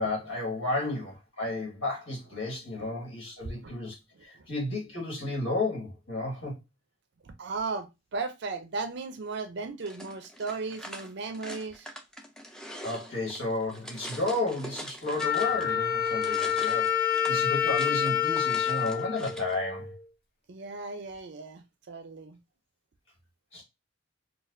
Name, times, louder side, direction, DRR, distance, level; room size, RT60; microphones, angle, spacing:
voice 1, 0.0-3.9 4.2-6.6 12.8-19.9 23.5-23.6, left 2 dB, 70° left, 1.6 m, -32 dB
voice 2, 4.1-4.5 7.2-11.9 20.5-22.4, right 4 dB, 55° right, 0.5 m, -36 dB
sound 1, 9.8-15.8 16.0-19.6, equal, 5° left, 0.4 m, -44 dB
Wind instrument woodwind instrument, 15.2-20.0, left 9 dB, 45° left, 0.6 m, -27 dB
4.1 x 2.3 x 2.5 m
head